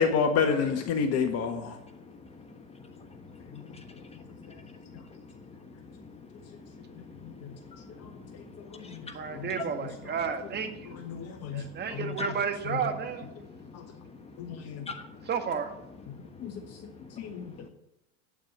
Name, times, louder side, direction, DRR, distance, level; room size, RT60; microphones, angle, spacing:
voice 1, 0.0-1.8 3.5-3.7 4.5-4.6 6.9-7.5 8.0-8.4 8.7-9.6 11.0-11.6 11.9-12.1 12.6-12.8 13.7-13.9 14.4-14.9 16.4-16.5 16.8-16.9 17.2-17.5, left 6 dB, 40° left, 5 dB, 1.5 m, -30 dB
voice 2, 1.6-9.7 11.1-12.3 13.4-15.3 16.0-17.7, left 4 dB, 15° left, 7 dB, 1.2 m, -46 dB
voice 3, 9.1-11.0 11.5-13.3 15.3-15.7, right 7 dB, 25° right, 6 dB, 1.8 m, -32 dB
9.0 x 8.8 x 9.7 m, 0.86 s
hypercardioid pair, 115°, 39 cm